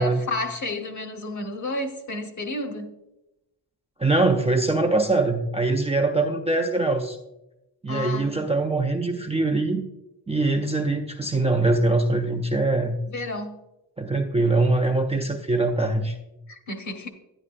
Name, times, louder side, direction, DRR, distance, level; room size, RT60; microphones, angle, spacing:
voice 1, 0.0-2.9 7.9-8.4 13.1-13.6 16.5-17.1, left 2 dB, 45° left, 4 dB, 1.1 m, -31 dB
voice 2, 4.0-7.2 7.8-9.8 10.3-13.0 14.0-16.2, right 2 dB, 15° right, 2 dB, 0.5 m, -23 dB
11.0 x 10.0 x 2.5 m, 0.94 s
wide cardioid pair, 170°, 42 cm